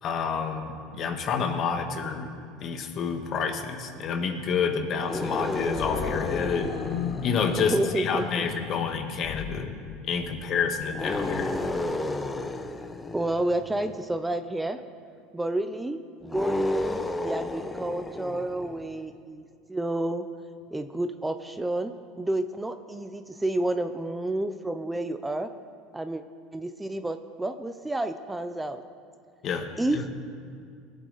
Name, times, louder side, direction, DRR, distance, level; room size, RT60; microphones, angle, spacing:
voice 1, 0.0-2.3 2.6-6.8 7.2-9.8 10.0-11.5 29.4-30.0, left 5 dB, 50° left, 6 dB, 1.5 m, -29 dB
sound 1, 5.0-8.5 10.9-14.0 16.2-19.0, left 2 dB, 15° left, 0.8 m, -33 dB
Animal, 5.7-12.8, left 9 dB, 65° left, 0.6 m, -37 dB
voice 2, 7.6-8.5 13.1-14.8 15.3-20.2 20.7-25.5 25.9-26.2 26.5-28.8 29.8-30.1, right 1 dB, 10° right, 9 dB, 0.6 m, -30 dB
20.0 x 8.3 x 4.1 m, 2.2 s
hypercardioid pair, 90°, 0 cm